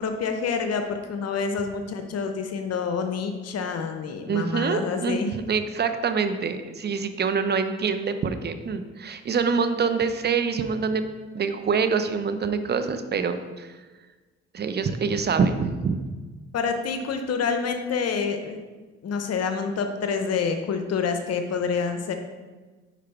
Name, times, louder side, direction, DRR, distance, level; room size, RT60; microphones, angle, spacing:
voice 1, 0.0-5.3 16.5-18.6 19.0-22.1, left 5 dB, 60° left, 6 dB, 0.8 m, -27 dB
voice 2, 4.3-11.0 11.3-13.7 14.5-16.0, right 5 dB, 35° right, 9 dB, 0.6 m, -25 dB
5.0 x 4.7 x 4.5 m, 1.3 s
supercardioid pair, 65°, 29 cm